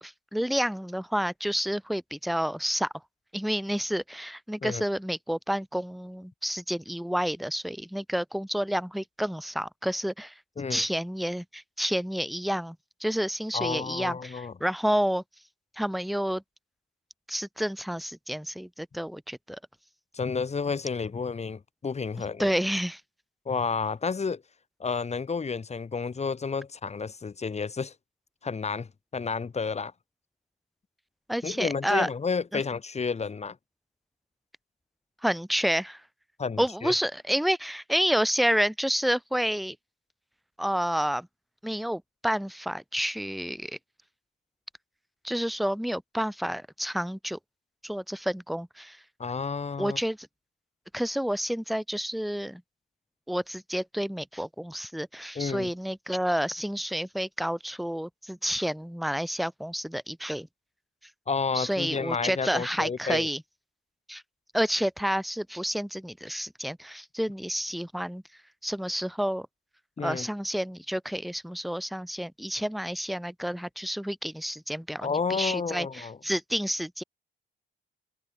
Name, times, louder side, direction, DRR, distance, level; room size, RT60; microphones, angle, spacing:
voice 1, 0.0-2.9 3.3-10.3 10.7-12.8 13.0-15.2 15.8-16.4 17.3-19.6 22.4-23.0 31.3-32.1 32.5-32.6 35.2-36.0 36.6-39.8 40.6-41.3 41.6-43.8 45.2-47.4 47.8-49.0 49.8-50.2 50.9-52.6 53.3-60.5 61.5-63.4 64.1-64.2 64.5-68.2 68.6-69.5 70.0-77.0, equal, ahead, 0.8 m, -29 dB
voice 2, 13.5-14.5 20.1-22.5 23.4-24.4 24.8-27.9 28.4-29.9 31.4-33.6 36.4-36.9 49.2-50.0 55.3-55.7 61.3-63.3 70.0-70.3 75.0-76.2, left 5 dB, 35° left, 3.1 m, -31 dB
cardioid pair, 90°, 20 cm